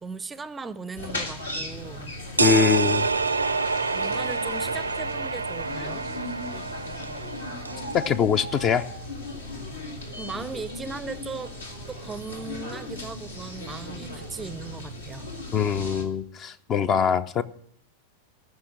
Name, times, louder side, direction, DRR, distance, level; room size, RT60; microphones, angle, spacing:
voice 1, 0.0-2.1 3.9-6.1 10.2-11.5 11.9-15.3, right 4 dB, 15° right, 16 dB, 0.5 m, -37 dB
sound 1, 1.0-16.1, left 1 dB, 70° left, 1.9 m, -37 dB
voice 2, 2.4-3.1 7.9-8.9 15.5-17.4, left 7 dB, 30° left, 15 dB, 0.5 m, -23 dB
sound 2, 2.4-7.9, right 4 dB, 80° right, 0.5 m, -27 dB
14.5 x 5.7 x 8.6 m, 0.67 s
figure-of-eight pair, 90°, 0 cm